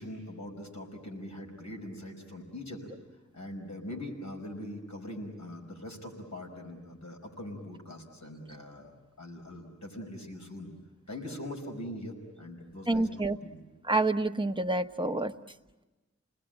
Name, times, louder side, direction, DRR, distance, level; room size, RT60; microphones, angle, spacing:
voice 1, 0.0-2.9 3.3-8.9 9.2-10.7 11.1-13.6, left 1 dB, 70° left, 1 dB, 5.3 m, -42 dB
voice 2, 12.9-13.4 13.9-15.3, right 2 dB, 15° right, 6 dB, 1.0 m, -28 dB
30.0 x 20.0 x 9.0 m, 1.2 s
wide cardioid pair, 55°, 29 cm